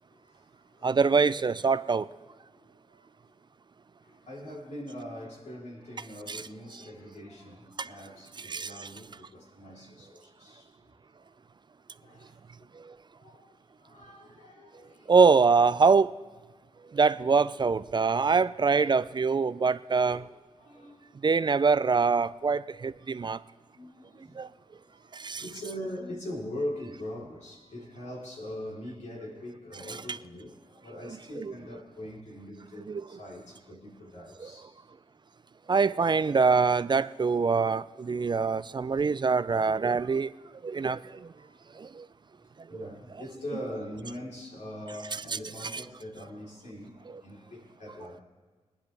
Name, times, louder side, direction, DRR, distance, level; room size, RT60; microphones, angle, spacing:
voice 1, 0.1-1.0 2.5-3.2 4.0-10.7 11.1-11.3 12.0-12.4 13.2-15.1 17.5-17.7 19.4-19.6 20.1-20.3 20.6-21.0 23.7-34.7 38.8-38.9 40.7-41.0 41.3-41.9 42.7-48.2, left 1 dB, 80° left, 3.8 m, -42 dB
voice 2, 0.8-2.0 6.3-6.4 7.8-7.9 8.5-8.9 15.1-16.1 16.9-20.2 21.2-23.4 24.4-24.5 25.2-25.4 29.9-30.2 31.4-31.5 32.9-33.0 34.4-34.5 35.7-40.3 40.6-41.0 42.7-42.9 43.5-43.6 45.3-45.8, right 5 dB, 40° right, 0.4 m, -24 dB
23.0 x 10.0 x 3.4 m
cardioid pair, 75°, 12 cm